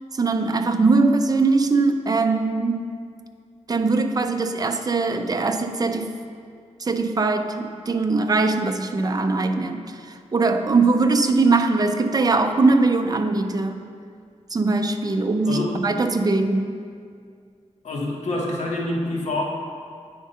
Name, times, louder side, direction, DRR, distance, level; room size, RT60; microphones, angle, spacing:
voice 1, 0.1-2.9 3.7-6.1 6.8-13.8 14.5-16.8, right 3 dB, 30° right, 7 dB, 0.4 m, -21 dB
voice 2, 15.4-15.8 17.8-19.4, left 1 dB, 70° left, -2 dB, 1.3 m, -26 dB
9.2 x 3.7 x 5.5 m, 2.2 s
wide cardioid pair, 140°, 12 cm